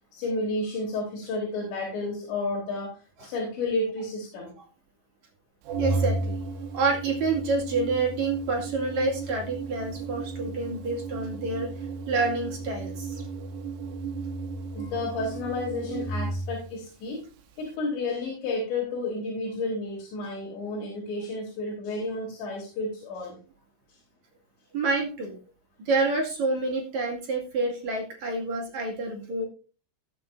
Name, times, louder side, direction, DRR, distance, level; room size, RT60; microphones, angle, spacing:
voice 1, 0.1-4.5 14.7-17.2 17.6-23.4, left 2 dB, 65° left, -2 dB, 5.5 m, -31 dB
Organ, 5.7-16.7, right 3 dB, 90° right, 3.7 m, -34 dB
voice 2, 5.8-6.4 6.7-11.7 12.1-13.2 24.7-25.4 25.9-29.4, right 3 dB, 45° right, 0 dB, 2.8 m, -28 dB
18.5 x 7.5 x 2.7 m, 0.35 s
omnidirectional pair, 5.5 m